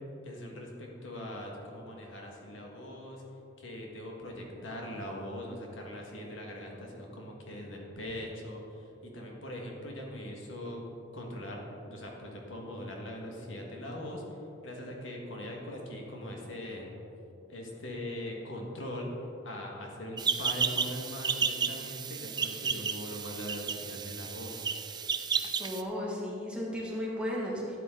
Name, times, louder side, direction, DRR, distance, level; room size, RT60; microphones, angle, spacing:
voice 1, 0.2-3.2 3.6-10.8 11.1-14.2 14.6-16.9 17.5-19.1 19.4-24.7, left 1 dB, 85° left, -1 dB, 1.8 m, -41 dB
sound 1, 20.2-25.8, right 6 dB, 20° right, 0.4 m, -32 dB
voice 2, 25.6-27.8, equal, 5° right, -5 dB, 1.9 m, -34 dB
12.5 x 9.1 x 3.9 m, 3.0 s
head